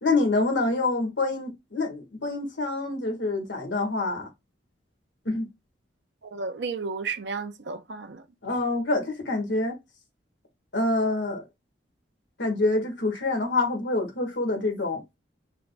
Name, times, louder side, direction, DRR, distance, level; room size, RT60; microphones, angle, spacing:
voice 1, 0.0-4.3 5.3-5.5 8.4-9.8 10.7-11.4 12.4-15.0, left 2 dB, 80° left, 1.7 m, -26 dB
voice 2, 6.2-8.2, right 4 dB, 65° right, 0.6 m, -33 dB
4.7 x 2.3 x 4.0 m
head